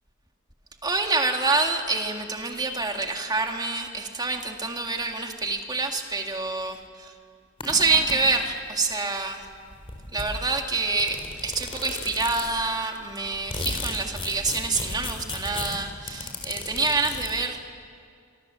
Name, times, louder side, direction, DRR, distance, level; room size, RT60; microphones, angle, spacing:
voice 1, 0.8-7.1 7.6-9.4 10.1-17.6, right 3 dB, 20° right, 4 dB, 2.0 m, -27 dB
sound 1, 7.6-8.6 9.4-9.5 9.7-12.7 13.1-17.3, left 3 dB, 25° left, 4.0 m, -35 dB
27.0 x 24.5 x 7.6 m, 2.2 s
head